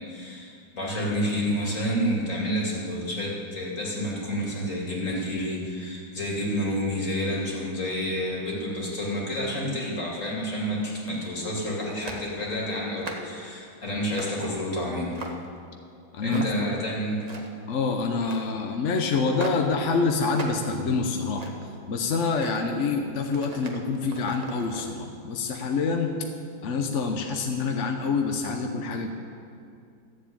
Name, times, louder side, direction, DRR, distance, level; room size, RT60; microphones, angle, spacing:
voice 1, 0.0-15.1 16.2-17.2, equal, 40° left, -3 dB, 2.9 m, -29 dB
sound 1, 10.9-11.4 12.0-12.3 12.8-13.4 14.1-14.4 14.9-15.6 16.3-16.7 17.1-17.7 18.2-18.5 19.3-19.7 20.3-20.7 21.1-21.8 22.3-22.6 23.2-24.9, right 2 dB, 25° right, 0.9 m, -39 dB
voice 2, 16.1-16.5 17.7-21.5 21.9-26.1 26.6-29.1, left 4 dB, 55° left, 4 dB, 0.8 m, -26 dB
13.5 x 7.7 x 8.8 m, 2.4 s
omnidirectional pair, 2.2 m